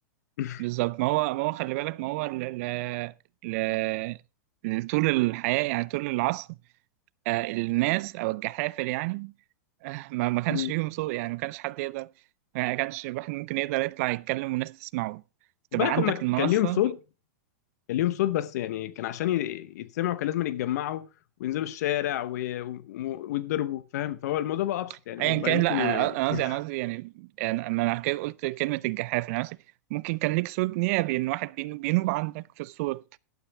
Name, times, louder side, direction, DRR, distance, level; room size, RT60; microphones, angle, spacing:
voice 1, 0.6-3.1 3.4-4.2 4.6-6.5 7.3-9.3 9.8-12.1 12.5-15.2 15.7-16.8 25.2-29.6 29.9-33.0, right 21 dB, 55° right, 0.5 m, -28 dB
voice 2, 15.7-17.0 17.9-21.1 21.4-26.6, left 13 dB, 65° left, 0.9 m, -29 dB
12.0 x 11.0 x 3.3 m
hypercardioid pair, 125°, 9 cm